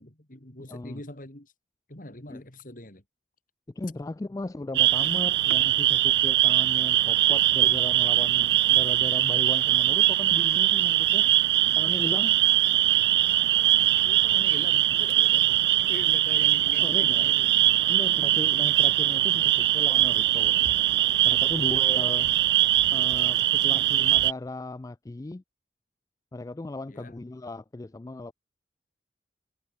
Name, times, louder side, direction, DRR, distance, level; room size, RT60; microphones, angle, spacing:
voice 1, 0.0-1.5 1.9-3.0 14.0-17.6 18.0-18.8 23.5-24.0 26.9-27.2, left 1 dB, 50° left, 3.6 m, -44 dB
voice 2, 0.7-1.0 2.3-2.4 3.8-11.3 11.8-12.4 16.8-17.3 17.9-20.6 21.2-22.3 22.9-25.4 26.3-28.3, left 2 dB, 20° left, 0.3 m, -36 dB
sound 1, 4.7-24.3, right 13 dB, 65° right, 0.5 m, -22 dB
head